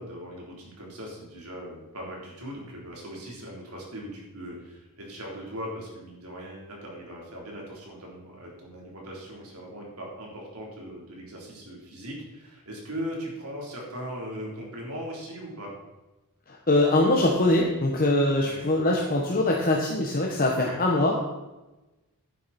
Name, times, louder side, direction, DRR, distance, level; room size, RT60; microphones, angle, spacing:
voice 1, 0.0-15.7 18.4-18.7 20.6-20.8, equal, 75° right, -2 dB, 3.7 m, -39 dB
voice 2, 16.5-21.2, left 2 dB, 40° left, -1 dB, 1.3 m, -23 dB
11.5 x 9.7 x 4.3 m, 1.1 s
head